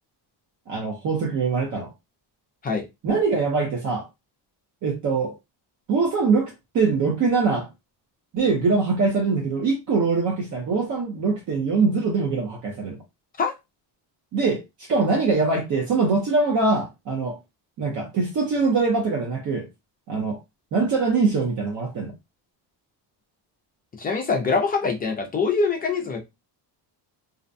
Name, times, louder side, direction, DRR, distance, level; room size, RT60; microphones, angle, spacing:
voice 1, 0.7-1.9 3.0-4.1 4.8-5.3 5.9-7.7 8.3-13.0 14.3-17.4 17.8-19.7 20.1-20.4 20.7-22.1, right 4 dB, 45° right, 0.7 m, -23 dB
voice 2, 24.0-26.2, left 4 dB, 20° left, 0.4 m, -24 dB
2.5 x 2.1 x 2.5 m
cardioid pair, 165°, 44 cm